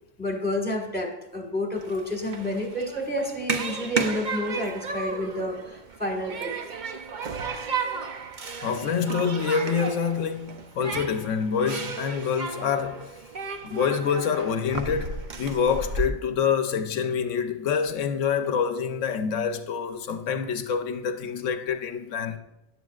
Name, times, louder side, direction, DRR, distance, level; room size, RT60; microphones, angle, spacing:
voice 1, 0.2-6.5, left 1 dB, 10° left, 1.6 m, -30 dB
Human group actions, 1.8-16.1, right 4 dB, 45° right, 0.8 m, -33 dB
voice 2, 8.6-13.1 13.6-22.4, left 6 dB, 90° left, 1.1 m, -26 dB
13.5 x 9.7 x 2.4 m
omnidirectional pair, 1.2 m